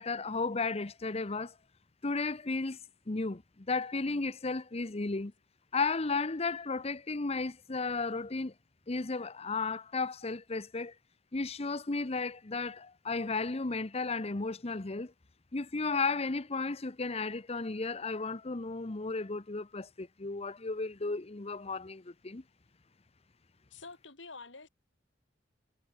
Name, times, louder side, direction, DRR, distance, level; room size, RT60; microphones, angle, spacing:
voice 1, 0.0-1.5 2.0-2.8 3.1-5.3 5.7-8.5 8.9-10.9 11.3-15.1 15.5-22.4, left 3 dB, 35° left, 0.9 m, -34 dB
voice 2, 23.7-24.7, left 4 dB, 90° left, 4.3 m, -47 dB
head